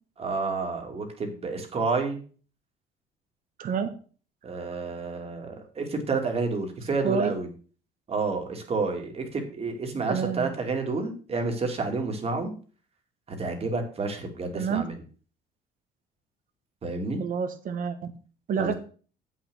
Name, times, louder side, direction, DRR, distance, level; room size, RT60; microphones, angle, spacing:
voice 1, 0.2-2.2 4.4-7.5 8.1-12.5 13.3-14.9 16.8-17.2 18.6-18.7, right 3 dB, 35° right, 3 dB, 2.4 m, -30 dB
voice 2, 3.6-3.9 7.0-7.3 10.1-10.5 14.5-14.9 17.2-18.1 18.5-18.7, right 7 dB, 55° right, 9 dB, 1.4 m, -28 dB
8.0 x 5.9 x 6.2 m, 0.40 s
cardioid pair, 110°, 17 cm